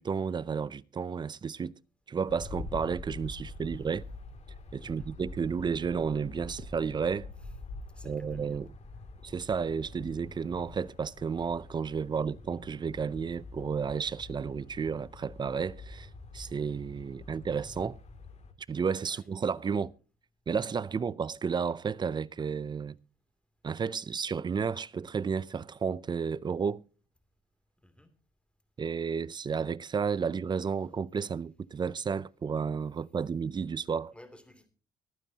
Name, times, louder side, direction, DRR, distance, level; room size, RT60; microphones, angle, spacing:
voice 1, 0.0-1.8 2.1-4.1 4.7-7.3 8.0-8.7 9.2-18.0 18.7-19.9 20.5-23.0 23.6-26.8 28.8-34.1, right 6 dB, 25° right, 0.5 m, -32 dB
sound 1, 2.3-18.5, left 3 dB, 40° left, 2.6 m, -46 dB
voice 2, 7.9-8.6 19.1-19.3 27.8-28.1 34.1-34.7, left 1 dB, 5° left, 2.8 m, -55 dB
24.0 x 9.1 x 2.8 m
cardioid pair, 110°, 17 cm